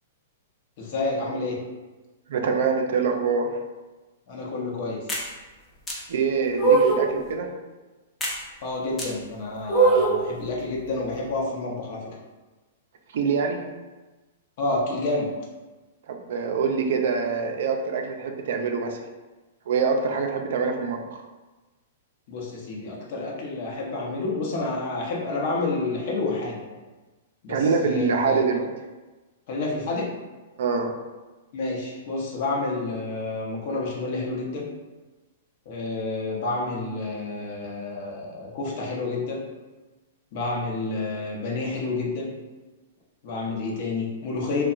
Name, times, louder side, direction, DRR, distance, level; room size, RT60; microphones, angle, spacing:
voice 1, 0.8-1.6 4.3-5.2 8.6-12.2 14.6-15.3 22.3-26.7 27.4-28.4 29.5-30.1 31.5-34.7 35.7-39.4 40.3-42.3 43.2-44.6, left 3 dB, 55° left, -3 dB, 0.7 m, -29 dB
voice 2, 2.3-3.5 6.1-7.5 13.1-13.6 16.1-19.0 19.7-21.2 27.5-28.7 30.6-30.9, right 5 dB, 70° right, 4 dB, 0.3 m, -25 dB
sound 1, 5.1-5.3 5.9-6.0 6.6-7.1 8.2-8.4 9.0-9.1 9.7-10.2, right 3 dB, 15° left, 0.5 m, -20 dB
2.7 x 2.1 x 2.4 m, 1.2 s
hypercardioid pair, 130°, 0 cm